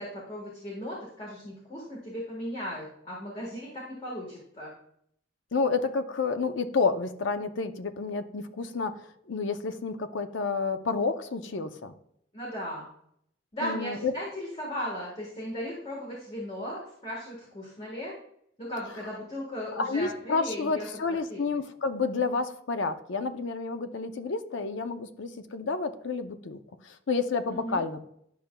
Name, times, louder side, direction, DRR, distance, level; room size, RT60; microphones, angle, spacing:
voice 1, 0.0-4.7 12.3-12.9 13.5-18.2 18.6-20.9 21.3-21.6 27.5-27.8, equal, 30° left, -3 dB, 1.3 m, -37 dB
voice 2, 5.5-11.9 13.6-14.1 19.7-26.6 26.8-28.0, left 4 dB, 70° left, 9 dB, 0.6 m, -30 dB
10.5 x 5.7 x 2.2 m, 0.71 s
head